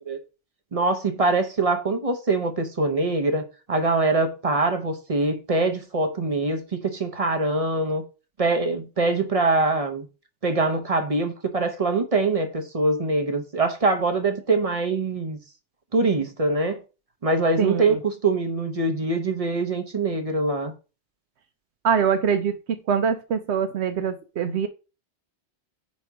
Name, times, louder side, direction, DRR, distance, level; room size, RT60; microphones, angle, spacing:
voice 1, 0.7-8.0 8.4-10.1 10.4-15.4 15.9-16.8 17.2-20.7, right 3 dB, 35° right, 0.8 m, -23 dB
voice 2, 17.6-18.0 21.8-24.7, right 7 dB, 75° right, 0.9 m, -24 dB
5.0 x 4.2 x 4.6 m
omnidirectional pair, 1.2 m